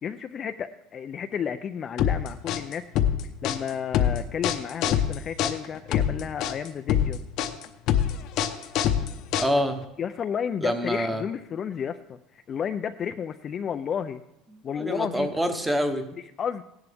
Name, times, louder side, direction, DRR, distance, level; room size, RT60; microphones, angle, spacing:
voice 1, 0.0-2.9 3.4-7.2 10.0-14.2 14.6-15.3 16.2-16.6, left 7 dB, 30° left, 8 dB, 0.3 m, -32 dB
sound 1, 2.0-9.8, left 10 dB, 50° left, 0.7 m, -25 dB
voice 2, 9.4-9.8 10.6-11.2 14.8-16.0, equal, 5° right, 8 dB, 0.9 m, -26 dB
16.5 x 10.5 x 3.4 m, 0.84 s
cardioid pair, 165°, 0 cm